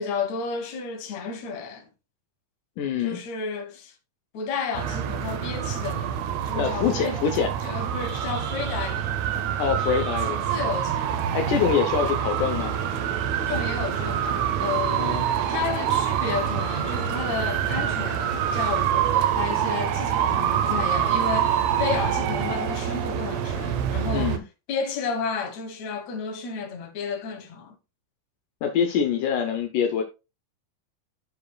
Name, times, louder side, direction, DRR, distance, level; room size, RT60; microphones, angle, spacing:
voice 1, 0.0-1.9 3.0-4.0 4.3-7.2 7.6-9.1 10.2-11.3 13.4-15.1 15.5-24.4 24.7-27.8, left 5 dB, 60° left, 2.5 m, -32 dB
voice 2, 2.8-3.2 6.6-7.5 9.6-10.6 11.3-12.7 14.9-15.3 24.1-24.4 28.6-30.0, left 7 dB, 80° left, 2.3 m, -25 dB
sound 1, 4.7-24.4, right 9 dB, 75° right, 1.7 m, -26 dB
14.5 x 5.0 x 2.3 m
omnidirectional pair, 3.7 m